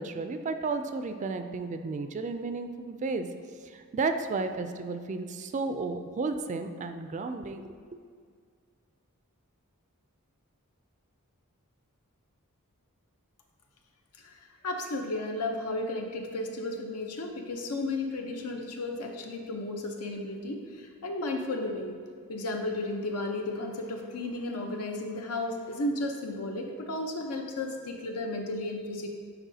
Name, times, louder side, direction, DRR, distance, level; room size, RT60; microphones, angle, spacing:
voice 1, 0.0-3.3 3.7-7.7, right 3 dB, 35° right, 8 dB, 0.3 m, -33 dB
voice 2, 14.2-21.9 22.3-29.1, left 2 dB, 85° left, 3 dB, 0.8 m, -34 dB
10.0 x 4.2 x 2.7 m, 2.1 s
head